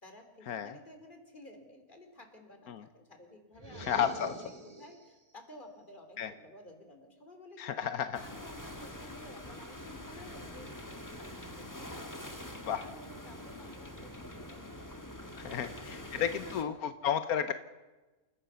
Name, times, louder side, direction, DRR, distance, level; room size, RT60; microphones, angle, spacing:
voice 1, 0.0-4.3 4.8-10.7 11.2-12.0 12.7-16.8, left 1 dB, 35° left, 5 dB, 3.4 m, -53 dB
sound 1, 3.5-5.2, right 2 dB, 25° right, 2.3 m, -45 dB
voice 2, 3.8-4.3 6.2-6.3 7.6-8.2 12.6-12.8 15.4-17.5, left 8 dB, 85° left, 10 dB, 1.4 m, -32 dB
sound 2, 8.1-16.6, left 1 dB, 15° left, 1.7 m, -45 dB
28.5 x 15.0 x 6.9 m, 1.2 s
omnidirectional pair, 1.5 m